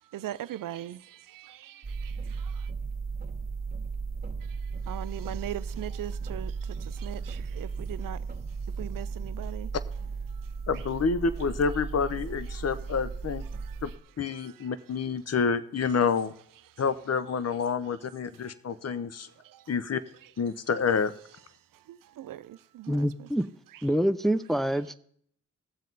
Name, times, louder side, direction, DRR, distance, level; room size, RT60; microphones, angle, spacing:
voice 1, 0.0-2.7 4.4-8.3 8.7-9.7 10.3-10.8 12.5-12.6 13.5-14.0 14.3-14.7 16.7-16.8 18.4-18.6 18.8-19.8 20.2-20.3 21.7-23.3 23.7-23.8, right 13 dB, 70° right, 0.6 m, -42 dB
sound 1, 1.8-14.0, right 4 dB, 25° right, 1.7 m, -35 dB
voice 2, 10.7-13.4 13.8-13.9 14.2-16.3 16.8-19.3 19.7-20.0 20.4-21.1, left 5 dB, 45° left, 0.9 m, -28 dB
voice 3, 22.9-23.5 23.8-25.0, equal, ahead, 0.7 m, -26 dB
19.0 x 7.4 x 4.0 m
supercardioid pair, 45°, 34 cm